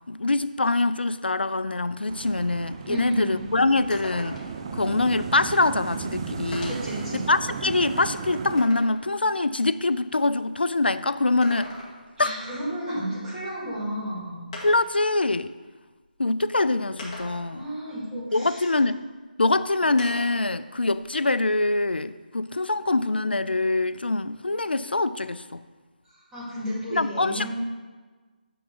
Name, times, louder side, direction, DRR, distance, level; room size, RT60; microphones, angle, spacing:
voice 1, 0.1-4.4 4.7-6.8 7.3-11.7 12.2-12.3 14.6-15.5 16.2-17.6 18.3-19.0 19.4-25.6 26.9-27.5, left 2 dB, 90° left, 15 dB, 0.3 m, -24 dB
sound 1, 2.1-8.6, right 5 dB, 30° right, 0.5 m, -35 dB
voice 2, 2.9-3.3 6.7-7.2 12.2-14.4 17.5-18.7 26.0-27.5, equal, 10° right, -9 dB, 2.2 m, -32 dB
sound 2, 3.0-3.1 3.4-3.5 3.9-4.7 5.7-5.8 6.5-7.0 7.6-9.0 11.2-12.2 13.7-13.8 14.5-15.0 16.0-16.1 17.0-17.6 20.0-20.5 20.8-21.9, left 2 dB, 30° left, 1.8 m, -41 dB
9.2 x 3.4 x 5.3 m, 1.4 s
figure-of-eight pair, 155°, 5 cm